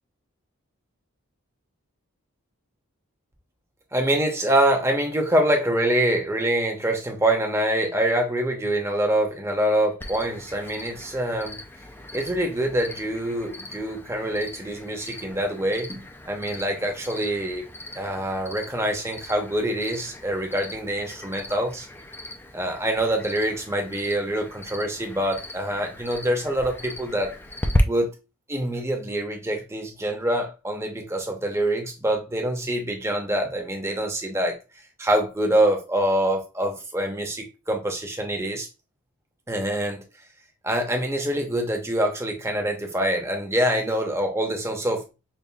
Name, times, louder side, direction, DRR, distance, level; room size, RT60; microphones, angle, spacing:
voice 1, 3.9-11.6 12.1-17.7 18.0-21.9 22.5-27.3 27.8-28.1 28.5-34.6 35.0-38.7 39.5-40.0 40.6-45.0, right 1 dB, 10° right, 0.7 m, -25 dB
Cricket, 10.0-27.8, left 1 dB, 10° left, 0.3 m, -37 dB
5.3 x 2.5 x 2.3 m
head